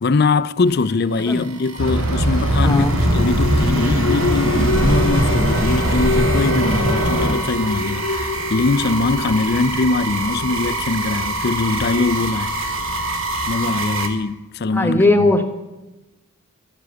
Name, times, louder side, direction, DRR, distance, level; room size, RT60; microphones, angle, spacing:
voice 1, 0.0-12.7 13.5-15.3, left 3 dB, 45° left, 0.5 m, -21 dB
sound 1, 0.7-14.1, right 3 dB, 65° right, 1.9 m, -28 dB
sound 2, 1.8-7.3, right 1 dB, 85° right, 3.4 m, -20 dB
Alarm, 2.2-14.2, left 2 dB, 65° left, 1.1 m, -27 dB
voice 2, 2.6-2.9 14.7-15.4, left 2 dB, 10° left, 1.2 m, -17 dB
14.0 x 9.8 x 7.9 m
head